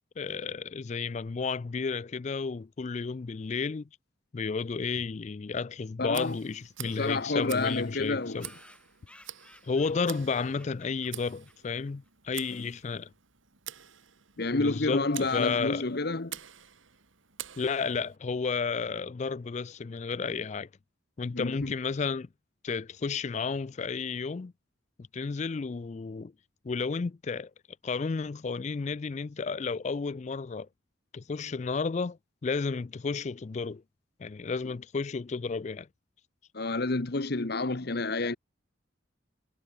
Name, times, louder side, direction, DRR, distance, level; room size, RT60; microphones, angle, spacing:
voice 1, 0.2-3.9 4.3-8.5 9.6-13.1 14.5-15.8 17.6-20.7 21.2-22.3 22.6-24.5 25.1-26.3 26.6-27.5 27.8-30.7 31.1-33.8 34.2-35.9, left 5 dB, 35° left, 0.4 m, -32 dB
voice 2, 6.0-6.4 6.8-8.5 14.4-16.4 21.3-21.7 36.5-38.4, left 3 dB, 50° left, 1.0 m, -29 dB
Tick, 6.1-18.2, right 12 dB, 80° right, 2.4 m, -47 dB
sound 1, 6.2-6.3 6.5-6.6 6.9-7.0 7.2-7.3 7.9-12.1, left 1 dB, 5° left, 3.6 m, -58 dB
head